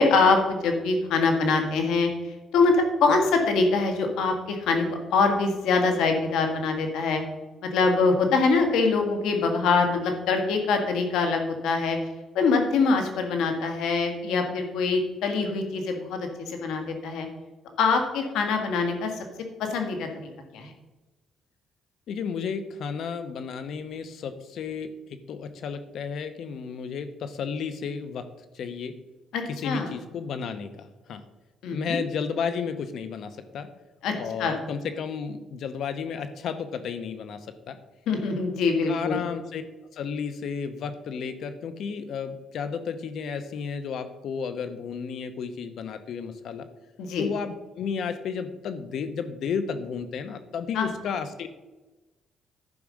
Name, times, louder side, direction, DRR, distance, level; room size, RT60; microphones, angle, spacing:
voice 1, 0.0-2.1 2.5-4.9 5.1-7.2 7.6-12.0 12.4-17.3 17.8-19.2 19.7-20.1 20.5-20.7 29.3-29.9 31.6-32.0 34.0-34.1 34.4-34.6 38.1-39.2 47.0-47.3 50.7-50.9, left 4 dB, 85° left, 4 dB, 1.8 m, -24 dB
voice 2, 22.1-24.9 25.3-28.3 28.5-28.9 29.5-31.2 31.7-33.7 34.2-37.4 37.7-37.8 38.9-39.6 39.9-46.7 47.2-51.5, left 6 dB, 70° left, 11 dB, 1.0 m, -32 dB
11.0 x 5.0 x 6.4 m, 1.1 s
cardioid pair, 90°, 0 cm